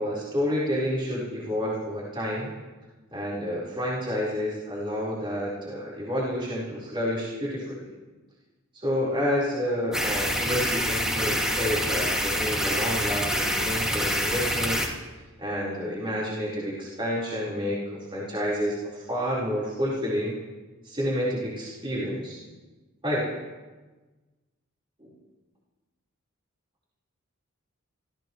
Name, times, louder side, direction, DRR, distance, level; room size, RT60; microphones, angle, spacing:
voice 1, 0.0-2.5 3.1-7.9 8.7-14.8 15.4-20.3 20.8-22.4 23.0-23.2 25.0-25.1, equal, 25° right, -8 dB, 4.2 m, -29 dB
sound 1, 9.9-14.9, equal, 5° right, 2.2 m, -26 dB
29.0 x 15.5 x 3.2 m, 1.2 s
head